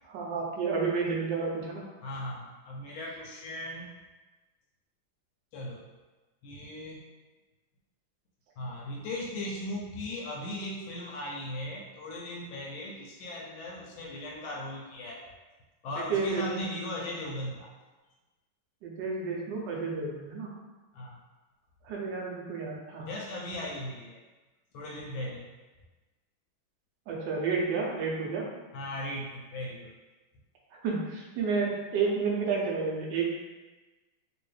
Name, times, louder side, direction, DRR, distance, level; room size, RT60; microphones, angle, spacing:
voice 1, 0.0-1.8 16.1-16.6 18.8-20.5 21.8-23.1 27.1-28.5 30.7-33.3, right 4 dB, 65° right, -3 dB, 1.3 m, -31 dB
voice 2, 2.0-3.9 5.5-5.9 6.4-7.0 8.6-15.3 15.8-17.7 20.9-21.2 23.1-24.2 24.7-25.5 28.7-29.9, left 1 dB, 75° left, -2 dB, 1.3 m, -38 dB
3.1 x 2.9 x 3.2 m, 1.2 s
omnidirectional pair, 2.3 m